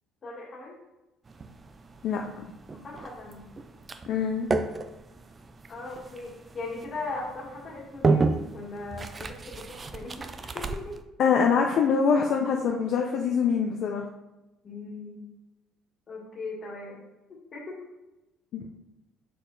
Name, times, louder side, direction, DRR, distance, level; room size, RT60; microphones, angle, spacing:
voice 1, 0.2-0.8 2.7-3.5 5.7-11.0 14.6-15.2 16.1-17.0 17.5-17.8, left 3 dB, 25° left, -3 dB, 1.7 m, -39 dB
sound 1, 1.2-11.0, right 3 dB, 20° right, 0.3 m, -32 dB
voice 2, 2.0-2.4 4.1-4.5 11.2-14.1 18.5-18.7, left 6 dB, 45° left, 1 dB, 0.5 m, -24 dB
6.6 x 4.2 x 3.9 m, 1.0 s
cardioid pair, 175°, 0 cm